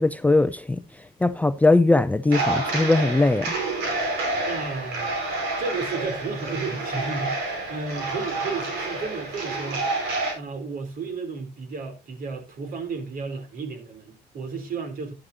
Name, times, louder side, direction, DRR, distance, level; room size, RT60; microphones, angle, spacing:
voice 1, 0.0-3.5, left 2 dB, 10° left, 0.5 m, -20 dB
sound 1, 2.3-10.3, right 2 dB, 85° right, 5.0 m, -28 dB
voice 2, 4.4-5.2 5.6-9.9 10.3-15.1, right 4 dB, 60° right, 3.2 m, -33 dB
11.5 x 10.5 x 2.7 m
cardioid pair, 110°, 17 cm